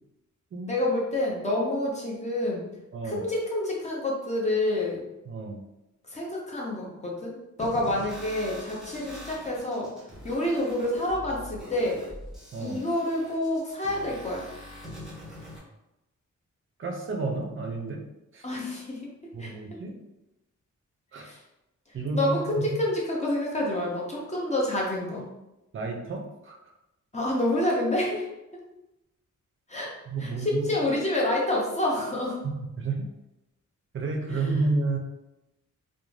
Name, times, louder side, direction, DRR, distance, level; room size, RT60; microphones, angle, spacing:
voice 1, 0.7-2.6 3.0-5.0 6.1-9.9 10.2-12.0 12.6-14.4 18.4-19.1 19.4-19.5 21.2-21.4 22.1-25.2 27.1-28.3 29.7-29.9 30.2-32.4 34.3-34.4, left 1 dB, 20° left, -3 dB, 0.6 m, -28 dB
voice 2, 2.9-3.2 5.3-5.6 12.5-12.8 16.8-18.0 18.3-18.5 19.3-20.0 21.1-21.3 21.9-22.8 25.7-26.6 30.1-30.6 32.4-33.1 33.9-35.0, right 3 dB, 40° right, 2 dB, 0.5 m, -31 dB
sound 1, 7.6-15.6, equal, ahead, 0.9 m, -43 dB
2.5 x 2.1 x 3.1 m, 0.93 s
wide cardioid pair, 170°, 31 cm